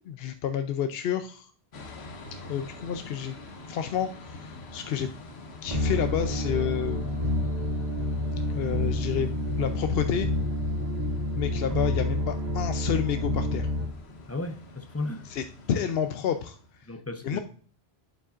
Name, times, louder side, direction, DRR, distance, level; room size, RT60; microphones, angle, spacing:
voice 1, 0.1-1.5 2.5-3.4 3.7-5.1 5.6-7.5 8.5-9.3 9.6-10.3 11.4-13.7 15.3-16.6 17.2-17.4, left 9 dB, 70° left, 8 dB, 0.8 m, -30 dB
sound 1, 1.7-16.8, left 2 dB, 85° left, 1.3 m, -46 dB
sound 2, 5.7-13.9, left 1 dB, 40° right, 1.9 m, -28 dB
voice 2, 14.3-15.3 16.8-17.4, left 2 dB, 15° left, 6 dB, 0.7 m, -34 dB
8.9 x 7.1 x 2.5 m, 0.43 s
omnidirectional pair, 1.1 m